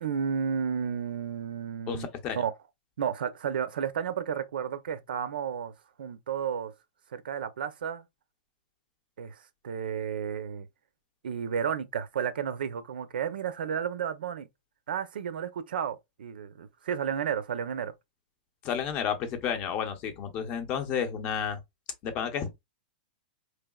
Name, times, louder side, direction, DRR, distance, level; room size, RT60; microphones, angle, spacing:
voice 1, 0.0-2.1 2.3-2.5 3.0-6.7 7.1-8.0 9.2-10.7 11.2-14.5 14.9-17.9, right 7 dB, 85° right, 0.7 m, -32 dB
voice 2, 1.9-2.4 18.6-21.6 22.0-22.5, left 7 dB, 20° left, 0.6 m, -31 dB
4.5 x 3.3 x 2.3 m
supercardioid pair, 180°, 5 cm